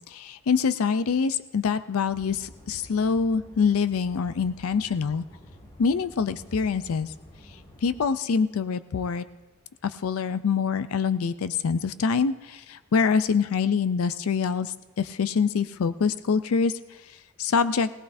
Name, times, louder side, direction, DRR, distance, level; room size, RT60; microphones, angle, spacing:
voice 1, 0.1-5.2 5.8-7.1 7.8-9.3 9.8-17.9, left 5 dB, 80° left, 12 dB, 0.4 m, -25 dB
sound 1, 2.1-8.1, equal, 25° left, 2.9 m, -49 dB
19.5 x 18.0 x 2.6 m, 1.1 s
head